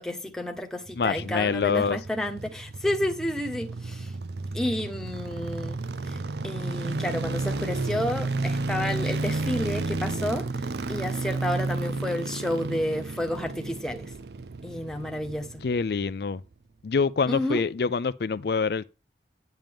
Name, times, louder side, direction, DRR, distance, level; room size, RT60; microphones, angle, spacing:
voice 1, 0.0-4.1 4.5-5.8 6.1-6.2 6.4-10.4 10.9-14.1 14.6-15.5 17.3-17.6, left 1 dB, 5° left, 1.2 m, -30 dB
sound 1, 0.9-16.1 16.3-16.4, right 2 dB, 70° right, 0.5 m, -32 dB
voice 2, 1.0-2.0 15.6-16.4 16.8-18.9, left 5 dB, 65° left, 0.4 m, -26 dB
9.1 x 9.1 x 3.5 m
head